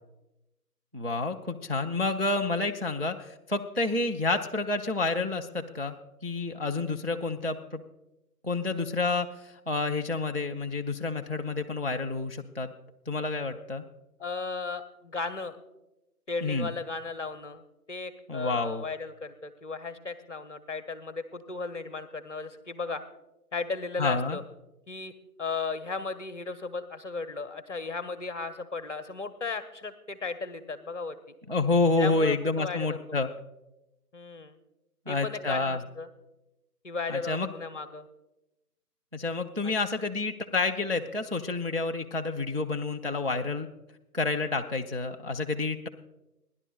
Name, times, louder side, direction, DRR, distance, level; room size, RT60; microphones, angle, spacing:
voice 1, 0.9-6.0 6.2-7.8 8.4-12.7 13.1-13.8 16.4-16.7 18.3-18.8 24.0-24.4 31.5-33.3 35.1-35.8 37.1-37.5 39.1-43.7 44.1-45.9, left 3 dB, 40° right, 4 dB, 0.4 m, -29 dB
voice 2, 14.2-15.6 16.3-17.6 17.9-23.0 23.5-24.4 24.9-25.1 25.4-31.2 32.0-33.0 34.1-34.6 35.1-36.1 36.8-38.1 39.6-39.7, left 4 dB, 50° left, 9 dB, 0.8 m, -35 dB
28.5 x 11.0 x 2.3 m, 0.95 s
figure-of-eight pair, 165°, 48 cm